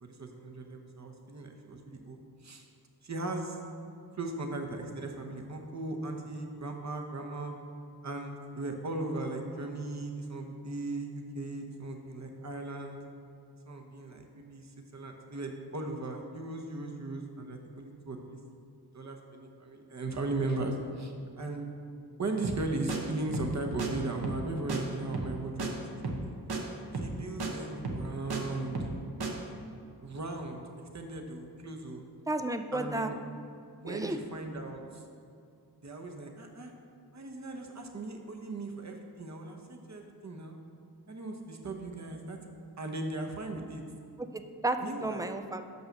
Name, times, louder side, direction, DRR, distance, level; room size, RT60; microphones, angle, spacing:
voice 1, 0.0-2.7 3.0-3.6 4.2-7.5 8.0-13.0 13.7-18.4 18.9-21.7 22.2-26.3 26.9-28.9 30.0-30.6 30.9-32.0 32.7-33.2 33.8-35.0 35.8-36.7 37.1-40.6 41.1-42.4 42.8-43.8 44.8-45.3, right 2 dB, 45° right, 3 dB, 1.0 m, -37 dB
sound 1, 22.4-22.6 22.9-23.0 23.3-23.5 23.8-23.9 24.2-24.4 24.7-24.8 25.1-25.3 25.6-25.7 26.0-26.2 26.5-26.6 26.9-27.1 27.4-27.5 27.8-28.4 28.7-29.0 29.2-29.3, right 3 dB, 70° right, 1.0 m, -33 dB
voice 2, 32.3-33.1 33.8-34.2 44.3-45.6, right 2 dB, 10° right, 8 dB, 0.4 m, -32 dB
5.8 x 5.5 x 6.6 m, 2.4 s
wide cardioid pair, 65°, 40 cm